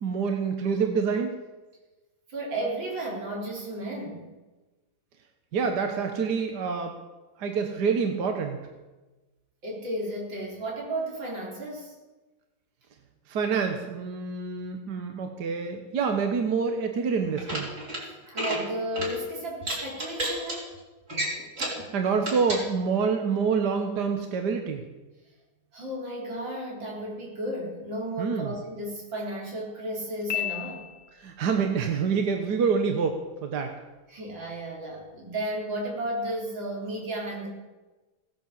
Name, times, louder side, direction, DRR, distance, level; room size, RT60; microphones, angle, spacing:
voice 1, 0.0-1.4 5.5-7.0 7.4-8.6 13.3-17.7 21.9-24.8 28.2-28.5 31.2-33.7, right 5 dB, 65° right, 4 dB, 1.7 m, -27 dB
voice 2, 2.3-4.4 9.6-11.9 18.3-20.8 25.7-30.9 34.1-37.5, right 1 dB, 85° right, -2 dB, 4.6 m, -33 dB
sound 1, 17.2-18.0 18.3-18.6 18.9-19.1 19.6-20.6 21.1-21.8 22.2-22.6, right 1 dB, 40° right, 4.3 m, -31 dB
Piano, 30.3-31.4, left 12 dB, 65° left, 1.9 m, -33 dB
17.0 x 9.9 x 7.6 m, 1.2 s
omnidirectional pair, 2.0 m